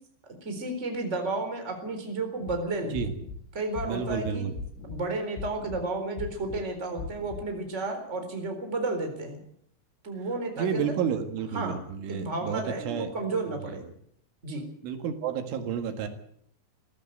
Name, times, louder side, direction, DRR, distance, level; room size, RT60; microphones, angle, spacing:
voice 1, 0.4-3.1 3.5-4.4 4.8-9.4 10.0-10.9 11.5-11.8 12.1-13.8 14.4-14.6, right 2 dB, 15° right, 5 dB, 3.7 m, -32 dB
sound 1, 2.4-2.6 2.9-3.4 3.8-4.2 4.6-5.0 5.4-5.8 6.2-6.6 7.0-7.4, left 4 dB, 90° left, 7.4 m, -38 dB
voice 2, 3.8-4.5 10.6-13.1 13.5-13.8 14.8-16.1, right 7 dB, 80° right, 6 dB, 4.2 m, -31 dB
21.0 x 15.5 x 8.1 m, 0.69 s
omnidirectional pair, 5.6 m